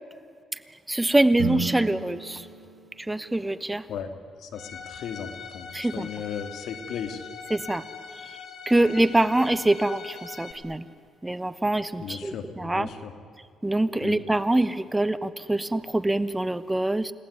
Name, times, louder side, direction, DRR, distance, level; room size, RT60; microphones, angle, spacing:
voice 1, 0.9-2.5 3.1-3.8 5.7-6.1 7.5-7.8 8.7-10.8 11.2-12.9 13.6-17.1, right 1 dB, 10° right, 14 dB, 1.0 m, -24 dB
sound 1, 1.4-3.8, right 5 dB, 80° right, 5.6 m, -34 dB
voice 2, 4.4-7.2 12.0-13.1 14.0-14.2, left 7 dB, 75° left, 8 dB, 2.6 m, -36 dB
Bowed string instrument, 4.6-10.5, left 6 dB, 60° left, 3.3 m, -42 dB
30.0 x 18.0 x 9.7 m, 2.3 s
cardioid pair, 90°, 0 cm